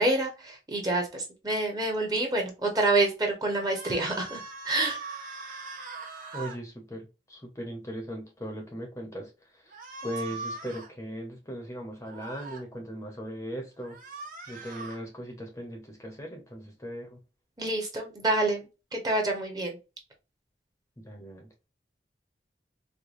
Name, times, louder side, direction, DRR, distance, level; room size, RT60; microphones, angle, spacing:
voice 1, 0.0-5.0 17.6-18.6 19.0-19.8, right 2 dB, 20° right, 1.0 m, -27 dB
sound 1, 3.5-6.6 9.7-10.9 12.0-12.6 13.8-15.0, right 4 dB, 50° right, 1.2 m, -41 dB
voice 2, 6.3-9.8 10.0-17.2 21.0-21.5, equal, 15° left, 0.8 m, -39 dB
4.8 x 2.2 x 2.5 m
head